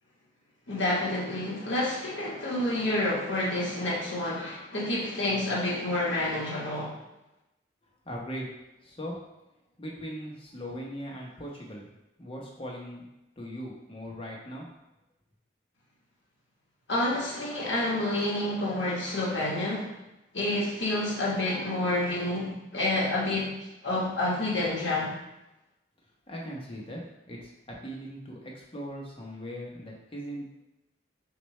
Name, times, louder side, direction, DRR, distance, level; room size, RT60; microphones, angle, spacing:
voice 1, 0.7-7.0 16.9-20.0 20.3-23.6 23.8-25.1, left 1 dB, 80° left, -5 dB, 1.5 m, -29 dB
voice 2, 8.0-8.5 8.8-9.2 9.8-11.9 12.2-13.0 13.4-14.7 26.3-27.0 27.3-30.5, equal, 30° left, -2 dB, 0.9 m, -39 dB
6.3 x 2.5 x 3.2 m, 0.94 s
head